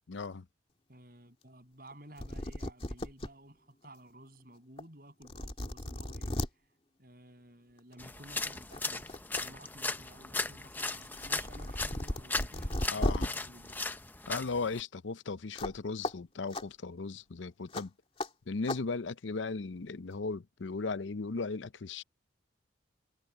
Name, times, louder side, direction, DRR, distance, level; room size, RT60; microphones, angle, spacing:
voice 1, 0.1-0.5 12.9-13.3 14.3-17.9 18.5-22.0, left 4 dB, 80° left, 0.6 m, -36 dB
voice 2, 0.9-6.3 7.0-9.1 9.4-13.8, right 1 dB, 50° right, 7.5 m, -54 dB
sound 1, 1.9-2.0 2.2-3.3 3.8-3.9 4.8-4.9 5.2-6.5 7.8-8.0 8.4-9.4 9.8-13.3 15.6-15.8 16.0-16.1 16.5-16.6 17.7-17.8 18.2-18.3 18.7-18.8, left 1 dB, 30° left, 2.5 m, -36 dB
sound 2, 8.0-14.8, left 3 dB, 10° left, 0.5 m, -37 dB
head